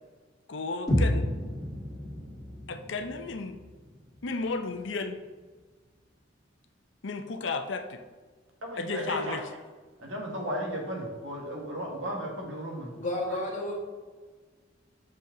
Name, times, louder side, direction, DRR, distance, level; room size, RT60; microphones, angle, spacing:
voice 1, 0.5-1.3 2.7-3.6 4.2-5.2 7.0-8.0 8.8-9.4, left 3 dB, 70° left, 7 dB, 0.6 m, -33 dB
sound 1, 0.9-4.9, left 1 dB, 20° left, 2.1 m, -31 dB
voice 2, 8.6-9.4 10.0-13.2, equal, 80° right, 0 dB, 1.7 m, -35 dB
voice 3, 12.9-13.8, left 1 dB, 40° left, -3 dB, 1.7 m, -31 dB
6.9 x 5.4 x 3.8 m, 1.4 s
head